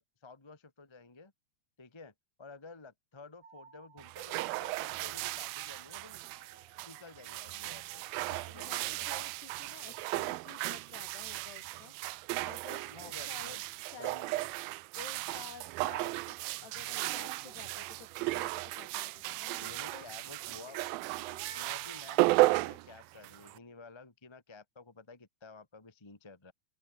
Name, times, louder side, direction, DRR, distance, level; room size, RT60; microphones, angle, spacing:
voice 1, 0.0-1.3 1.8-6.2 6.8-9.1 9.8-9.9 12.9-13.6 14.0-14.5 19.6-21.0 21.5-26.5, left 4 dB, 15° left, 0.9 m, -52 dB
sound 1, 3.4-10.3, right 5 dB, 65° right, 7.6 m, -62 dB
sound 2, 4.0-23.6, right 20 dB, 80° right, 2.2 m, -35 dB
voice 2, 8.5-11.9 12.4-14.2 15.0-20.0, left 7 dB, 75° left, 6.0 m, -52 dB
sound 3, 17.3-22.9, right 4 dB, 40° right, 5.7 m, -57 dB
open air
omnidirectional pair, 4.8 m